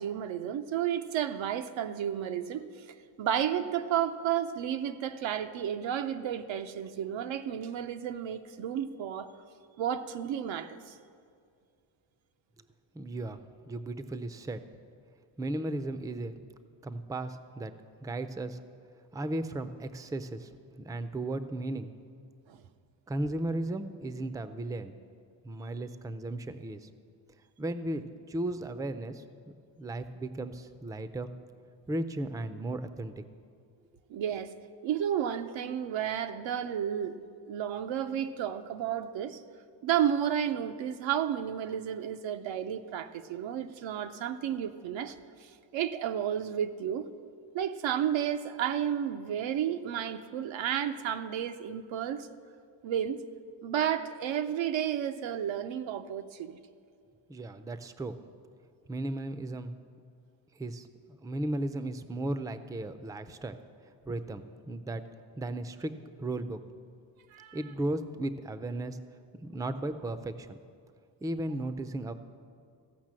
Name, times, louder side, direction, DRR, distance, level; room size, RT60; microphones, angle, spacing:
voice 1, 0.0-9.3 9.8-11.0 22.5-22.6 34.1-34.5 34.8-37.1 37.5-39.4 39.8-47.1 47.5-52.3 52.8-53.2 53.6-56.6 67.3-67.6, right 9 dB, 90° right, 9 dB, 0.7 m, -32 dB
voice 2, 12.9-13.4 13.7-14.6 15.4-16.4 16.8-17.7 18.0-18.6 19.1-21.9 23.1-25.0 25.4-26.9 27.6-29.2 29.8-31.3 31.9-33.1 57.3-58.2 58.9-59.8 60.6-60.9 61.2-63.6 64.0-65.0 65.4-65.9 66.2-66.6 67.5-69.0 69.4-70.6 71.2-72.1, right 1 dB, 10° right, 11 dB, 0.4 m, -35 dB
15.0 x 5.7 x 7.5 m, 2.2 s
cardioid pair, 105°, 44 cm